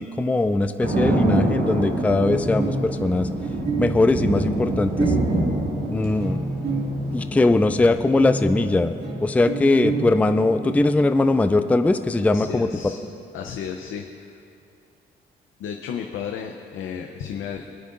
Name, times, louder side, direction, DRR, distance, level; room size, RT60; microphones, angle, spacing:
voice 1, 0.0-3.3 3.8-5.1 5.9-6.4 7.1-13.1, left 2 dB, 5° left, 9 dB, 0.4 m, -21 dB
sound 1, 0.8-8.2, right 2 dB, 75° right, 2.1 m, -26 dB
sound 2, 2.1-7.8 8.2-10.7, right 3 dB, 55° right, 2.1 m, -30 dB
voice 2, 12.3-13.0 13.3-14.4 15.6-17.7, left 7 dB, 80° left, 4 dB, 0.7 m, -33 dB
22.0 x 9.5 x 2.6 m, 2.6 s
cardioid pair, 90°, 20 cm